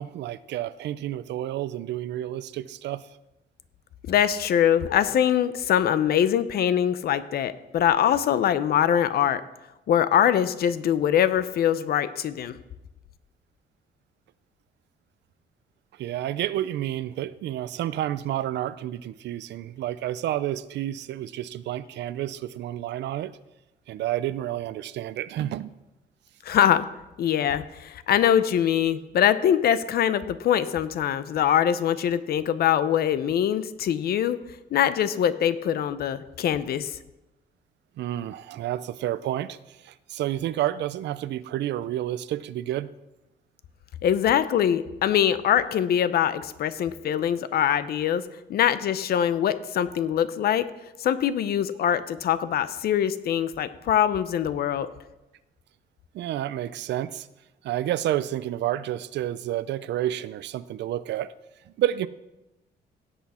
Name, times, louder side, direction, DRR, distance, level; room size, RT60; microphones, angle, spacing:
voice 1, 0.0-3.1 16.0-23.3 23.9-25.8 38.0-42.9 56.1-57.3 57.6-61.3 61.7-62.1, right 13 dB, 80° right, 16 dB, 0.5 m, -30 dB
voice 2, 4.1-9.4 9.9-12.5 26.5-26.8 27.2-34.4 34.7-36.9 44.0-48.2 48.5-50.7 51.0-54.9, left 9 dB, 60° left, 13 dB, 0.7 m, -23 dB
16.5 x 8.2 x 4.3 m, 0.98 s
cardioid pair, 175°, 18 cm